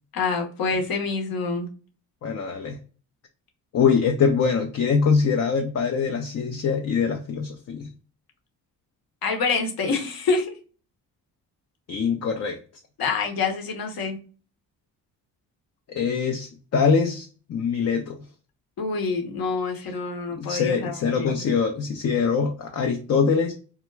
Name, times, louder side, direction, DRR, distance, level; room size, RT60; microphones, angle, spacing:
voice 1, 0.1-1.7 9.2-10.5 13.0-14.2 18.8-21.4, left 4 dB, 55° left, 3 dB, 0.9 m, -26 dB
voice 2, 2.2-2.8 3.7-7.9 11.9-12.6 15.9-18.2 20.3-23.5, left 5 dB, 40° left, 3 dB, 0.5 m, -23 dB
2.3 x 2.1 x 3.2 m, 0.37 s
hypercardioid pair, 50°, 43 cm